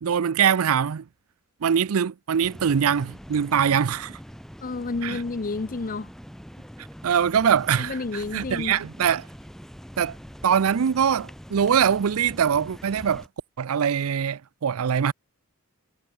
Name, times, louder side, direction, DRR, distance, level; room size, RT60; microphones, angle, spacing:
voice 1, 0.0-1.0 1.6-4.2 5.0-5.2 7.0-9.3 10.0-10.2 10.4-13.2 13.6-15.1, right 7 dB, 80° right, 0.5 m, -23 dB
sound 1, 2.4-13.3, equal, ahead, 4.9 m, -43 dB
voice 2, 4.6-6.1 7.8-8.8, left 3 dB, 40° left, 0.6 m, -30 dB
head